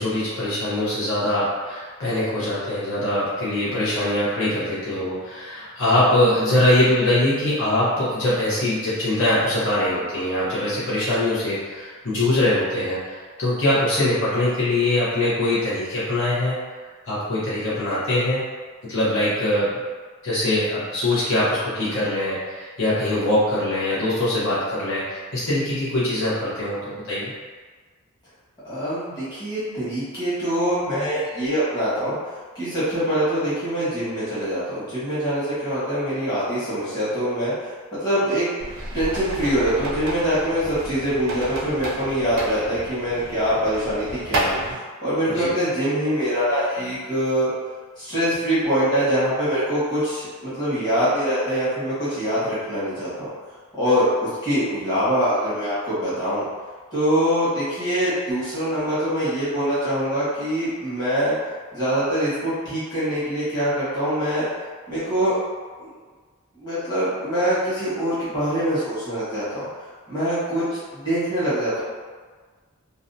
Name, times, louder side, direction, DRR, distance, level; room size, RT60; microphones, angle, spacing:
voice 1, 0.0-16.6 17.1-18.4 18.8-19.8 20.2-27.3 45.3-45.5, left 1 dB, 60° left, -10 dB, 0.8 m, -22 dB
voice 2, 28.6-32.1 32.5-37.5 37.9-38.4 38.9-44.6 45.0-47.5 48.0-53.3 53.7-56.4 56.9-61.3 61.7-64.5 64.9-65.4 65.8-65.9 66.6-69.7 70.1-70.6 70.9-71.8, equal, 20° left, -13 dB, 1.2 m, -24 dB
sound 1, 38.6-44.7, right 2 dB, 60° right, 0.5 m, -31 dB
2.6 x 2.1 x 2.6 m, 1.5 s
head